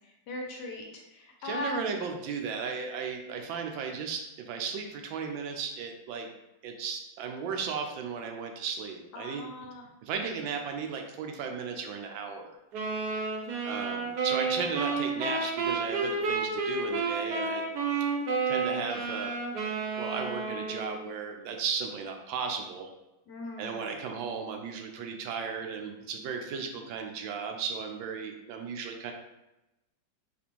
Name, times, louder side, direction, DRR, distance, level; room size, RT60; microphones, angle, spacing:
voice 1, 0.3-0.9 1.1-1.7 9.1-9.8 23.3-23.8, left 2 dB, 70° left, 0 dB, 1.1 m, -38 dB
voice 2, 1.4-6.3 6.6-9.5 10.0-12.6 13.6-17.6 17.9-18.1 18.5-19.3 20.0-22.9 23.6-29.1, right 6 dB, 80° right, 4 dB, 1.3 m, -35 dB
sound 1, 12.7-21.1, right 4 dB, 60° right, 1.1 m, -31 dB
4.2 x 3.1 x 3.0 m, 0.95 s
omnidirectional pair, 2.1 m